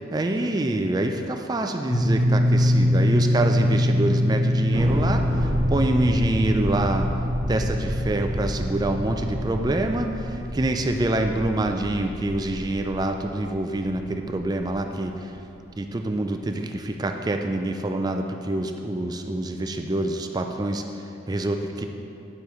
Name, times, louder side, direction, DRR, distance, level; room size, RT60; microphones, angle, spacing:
voice 1, 0.1-7.1 7.5-15.3 15.8-21.8, right 2 dB, 20° right, 5 dB, 0.3 m, -26 dB
sound 1, 1.9-11.5, left 1 dB, 50° left, 0.7 m, -24 dB
Thunder, 4.7-15.4, equal, 45° right, 1.4 m, -31 dB
9.6 x 6.9 x 3.1 m, 3.0 s
head